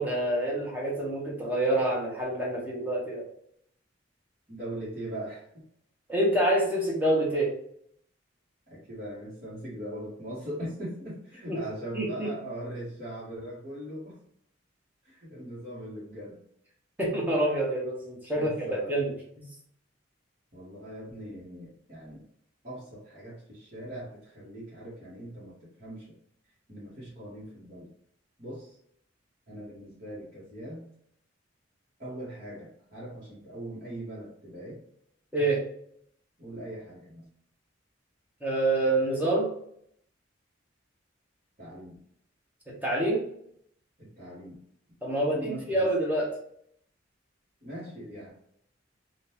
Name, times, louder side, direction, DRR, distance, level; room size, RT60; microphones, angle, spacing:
voice 1, 0.0-3.2 6.1-7.5 11.5-11.6 11.9-12.3 17.0-19.1 19.4-19.5 35.3-35.6 38.4-39.5 42.8-43.2 45.0-46.3, right 1 dB, 10° right, -4 dB, 1.0 m, -27 dB
voice 2, 4.5-5.6 8.7-14.2 15.0-16.4 18.3-19.0 20.5-22.2 22.6-26.1 26.7-27.9 28.4-28.8 29.5-30.8 32.0-34.8 36.4-37.3 41.6-41.9 44.0-44.5 45.3-45.9 47.6-48.3, right 1 dB, 40° right, -10 dB, 1.3 m, -40 dB
3.7 x 2.5 x 2.9 m, 0.69 s
head